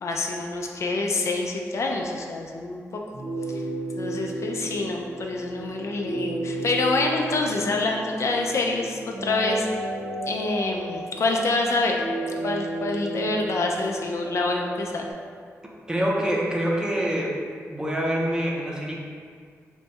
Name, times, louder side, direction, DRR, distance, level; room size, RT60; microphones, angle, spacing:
voice 1, 0.0-3.0 3.5-3.6 4.0-9.7 10.3-12.0 12.4-15.1, left 3 dB, 60° left, 1 dB, 0.3 m, -26 dB
sound 1, 3.1-15.1, right 2 dB, 85° right, 0.8 m, -33 dB
voice 2, 15.9-17.3 17.7-19.0, equal, 15° right, -3 dB, 0.5 m, -25 dB
2.6 x 2.3 x 4.1 m, 2.1 s
wide cardioid pair, 95°, 6 cm